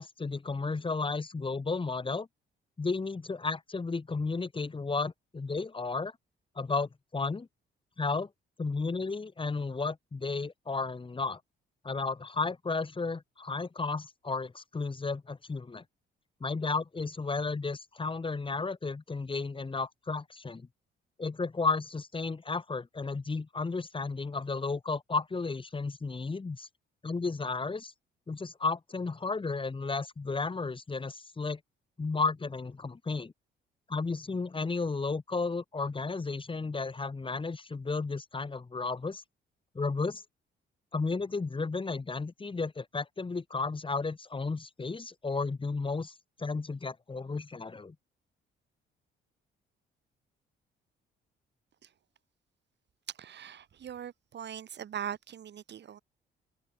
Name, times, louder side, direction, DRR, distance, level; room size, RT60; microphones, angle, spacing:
voice 1, 0.0-2.3 2.8-6.1 6.6-7.5 8.0-8.3 8.6-11.4 11.8-15.8 16.4-20.7 21.2-26.7 27.0-27.9 28.3-31.6 32.0-33.3 33.9-39.2 39.7-40.2 40.9-47.9, left 4 dB, 25° left, 2.9 m, -33 dB
voice 2, 53.2-56.0, right 9 dB, 60° right, 5.4 m, -41 dB
open air
cardioid pair, 90°, 20 cm